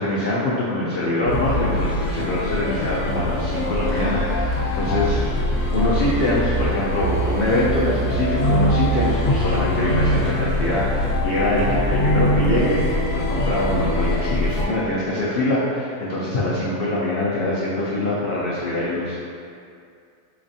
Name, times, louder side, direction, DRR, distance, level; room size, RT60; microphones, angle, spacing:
voice 1, 0.0-5.5 5.7-12.9 13.1-19.1, left 1 dB, 90° left, -7 dB, 0.5 m, -24 dB
sound 1, 1.3-14.6, equal, 65° left, 0.9 m, -22 dB
4.2 x 3.1 x 2.6 m, 2.4 s
omnidirectional pair, 1.6 m